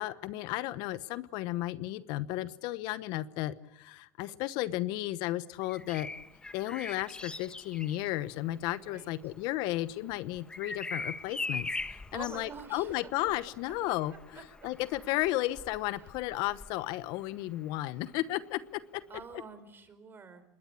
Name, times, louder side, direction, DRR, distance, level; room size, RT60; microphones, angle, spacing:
voice 1, 0.0-6.1 6.5-14.1 14.6-19.0, left 16 dB, 60° left, 15 dB, 1.0 m, -34 dB
Bird vocalization bird call bird song, 5.6-17.4 19.1-19.3, left 3 dB, 10° left, 1.2 m, -43 dB
voice 2, 8.8-9.1 11.8-13.0 13.9-14.0 14.3-14.7 15.8-16.1 19.1-20.4, right 5 dB, 25° right, 11 dB, 4.6 m, -47 dB
26.0 x 21.0 x 8.5 m, 0.92 s
supercardioid pair, 105°, 8 cm